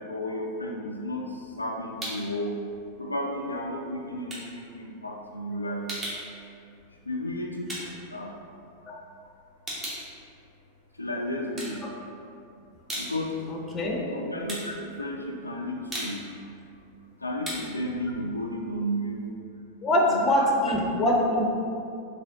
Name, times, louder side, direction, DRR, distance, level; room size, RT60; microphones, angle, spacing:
voice 1, 0.0-2.5 3.0-5.8 7.1-8.4 11.0-11.8 13.0-13.3 14.1-16.3 17.2-19.4 20.0-21.4, equal, 85° left, -1 dB, 0.3 m, -33 dB
sound 1, 1.1-2.4 2.7-8.9 9.3-11.0 11.4-12.3 12.6-19.3, right 1 dB, 20° right, 1.1 m, -39 dB
voice 2, 13.5-14.0 19.8-21.5, left 1 dB, 20° left, -1 dB, 0.6 m, -24 dB
4.0 x 3.2 x 2.7 m, 2.5 s
figure-of-eight pair, 90°, 0 cm